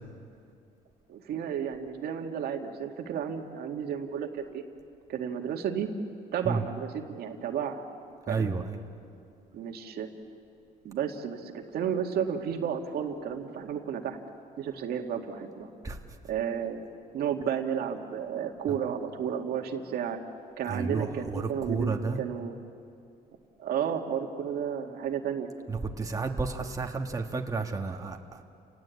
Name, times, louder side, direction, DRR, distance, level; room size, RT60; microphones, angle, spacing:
voice 1, 1.1-4.6 5.1-5.9 6.3-7.8 8.3-8.5 9.5-10.1 10.8-14.2 14.6-15.7 16.3-16.8 17.1-20.2 20.6-22.6 23.6-25.5, right 8 dB, 65° right, 4 dB, 2.1 m, -32 dB
voice 2, 8.3-8.8 15.8-16.0 20.7-22.2 25.7-28.4, right 4 dB, 20° right, 2 dB, 1.7 m, -31 dB
30.0 x 18.5 x 8.5 m, 2.5 s
cardioid pair, 110°, 17 cm